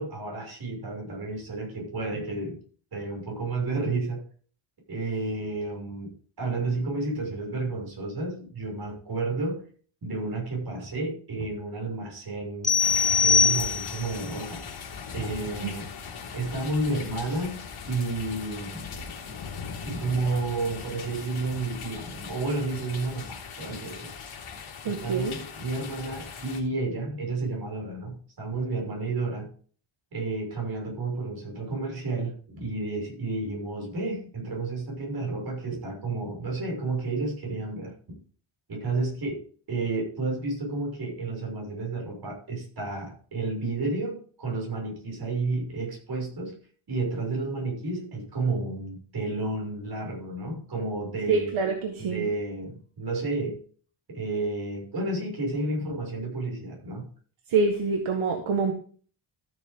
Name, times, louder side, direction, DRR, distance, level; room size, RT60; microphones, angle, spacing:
voice 1, 0.0-2.6 2.9-4.2 4.9-6.1 6.4-9.6 10.0-12.8 13.2-14.6 15.1-15.9 16.3-18.9 19.8-24.1 24.8-29.5 30.1-38.2 38.7-46.5 46.9-51.5 52.0-53.6 54.1-57.1, right 3 dB, 50° right, 0 dB, 6.7 m, -31 dB
sound 1, 12.6-14.2, left 5 dB, 15° left, 0.7 m, -22 dB
sound 2, 12.8-26.6, left 5 dB, 75° left, 3.5 m, -39 dB
voice 2, 24.9-25.3 51.3-52.2 57.5-58.7, right 4 dB, 75° right, 3 dB, 1.8 m, -26 dB
14.5 x 7.5 x 3.8 m, 0.44 s
wide cardioid pair, 150°, 49 cm